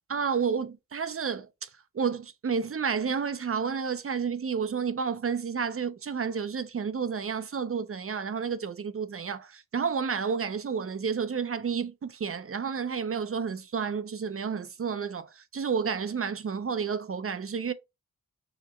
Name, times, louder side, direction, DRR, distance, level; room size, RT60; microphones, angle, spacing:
voice 1, 0.1-1.7 1.9-17.7, right 6 dB, 40° right, 0.4 m, -31 dB
4.9 x 2.1 x 2.9 m
wide cardioid pair, 50°, 37 cm